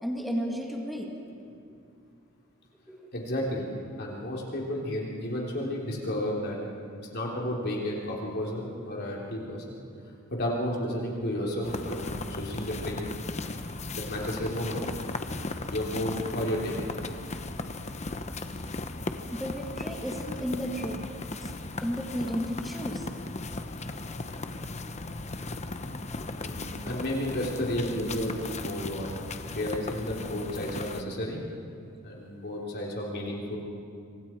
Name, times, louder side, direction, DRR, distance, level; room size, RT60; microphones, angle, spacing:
voice 1, 0.0-1.1 2.9-3.0 19.3-21.0 21.3-21.5 21.8-23.1, equal, ahead, 0 dB, 2.0 m, -33 dB
voice 2, 3.1-3.6 4.0-6.6 7.1-9.8 10.3-13.1 14.0-14.8 15.7-16.8 26.3-29.1 29.5-31.4 32.0-33.6, left 1 dB, 50° left, -3 dB, 3.5 m, -32 dB
sound 1, 11.6-31.0, left 2 dB, 30° left, 0.9 m, -37 dB
27.0 x 25.0 x 4.6 m, 2.4 s
head